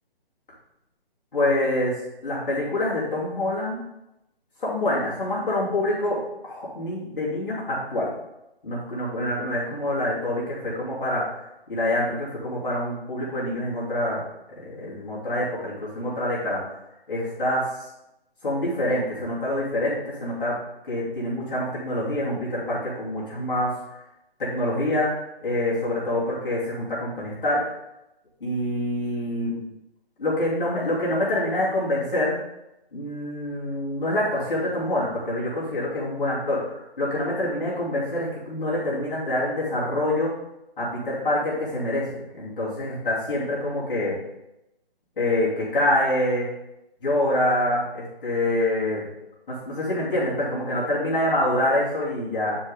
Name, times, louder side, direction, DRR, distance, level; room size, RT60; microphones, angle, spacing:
voice 1, 1.3-2.0 2.2-3.8 4.6-8.1 8.6-11.4 11.7-14.2 14.6-16.6 17.1-17.7 18.4-20.6 20.9-23.7 24.4-27.6 28.4-29.6 30.2-32.4 32.9-40.3 40.8-44.2 45.2-46.5 47.0-49.1 49.5-52.6, left 1 dB, 60° left, -8 dB, 3.1 m, -26 dB
9.4 x 5.4 x 3.7 m, 0.89 s
figure-of-eight pair, 140°, 30 cm